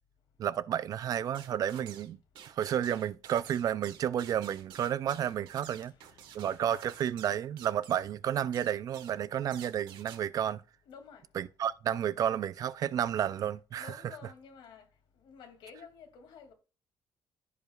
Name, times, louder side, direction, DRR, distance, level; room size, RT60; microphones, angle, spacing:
voice 1, 0.4-2.2 2.5-5.9 6.3-10.6 11.4-13.9, right 10 dB, 45° right, 0.4 m, -31 dB
sound 1, 1.3-2.1 2.4-8.1 8.5-9.2 9.5-10.2, right 9 dB, 80° right, 1.4 m, -51 dB
voice 2, 5.8-6.5 10.9-11.3 13.7-14.9 15.2-16.5, left 6 dB, 80° left, 2.4 m, -51 dB
15.0 x 5.1 x 2.4 m
cardioid pair, 170°, 8 cm